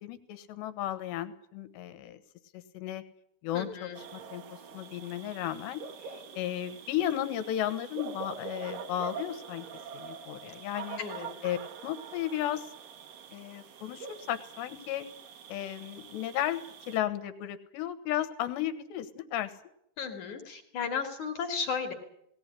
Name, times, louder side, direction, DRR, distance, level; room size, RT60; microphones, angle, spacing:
voice 1, 0.0-2.2 2.5-3.0 3.4-9.7 9.9-11.0 11.4-11.6 11.8-12.7 13.3-15.1 15.5-19.5, left 12 dB, 75° left, 12 dB, 3.2 m, -34 dB
voice 2, 3.5-4.0 11.0-11.3 20.0-21.9, left 6 dB, 50° left, 4 dB, 2.5 m, -34 dB
sound 1, 3.9-17.0, right 6 dB, 60° right, 2.6 m, -45 dB
19.0 x 18.0 x 9.9 m, 0.78 s
omnidirectional pair, 5.5 m